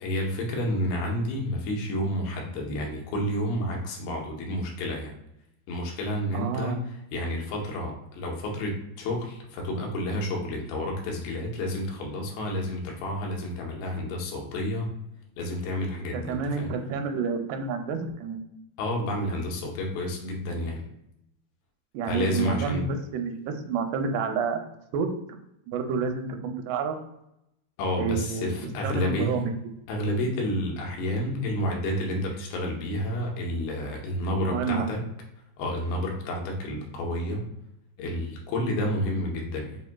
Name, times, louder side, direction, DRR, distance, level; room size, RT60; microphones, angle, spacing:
voice 1, 0.0-5.1 5.7-14.9 15.4-16.7 18.8-20.8 22.1-22.8 27.8-29.4 29.9-35.0 35.6-37.4 38.0-39.8, left 1 dB, 90° left, 0 dB, 3.1 m, -30 dB
voice 2, 6.3-6.9 16.1-18.4 21.9-24.7 24.9-25.1 25.7-27.0 28.0-29.5 34.5-34.9, right 5 dB, 85° right, 5 dB, 2.6 m, -29 dB
7.1 x 2.5 x 2.2 m, 0.82 s
omnidirectional pair, 4.7 m